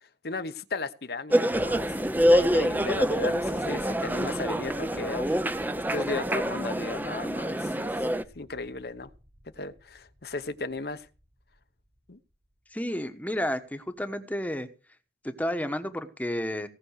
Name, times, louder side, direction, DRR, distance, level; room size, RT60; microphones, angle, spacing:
voice 1, 0.0-1.9 2.3-8.1 8.3-9.1 9.6-11.1 12.1-12.2, left 3 dB, 60° left, 1.0 m, -35 dB
sound 1, 1.3-8.2, equal, 10° right, 0.7 m, -26 dB
Thunder, 1.5-12.2, equal, 75° right, 5.0 m, -50 dB
voice 2, 12.7-14.7 15.2-16.7, equal, 10° left, 1.2 m, -31 dB
18.0 x 6.2 x 6.4 m
head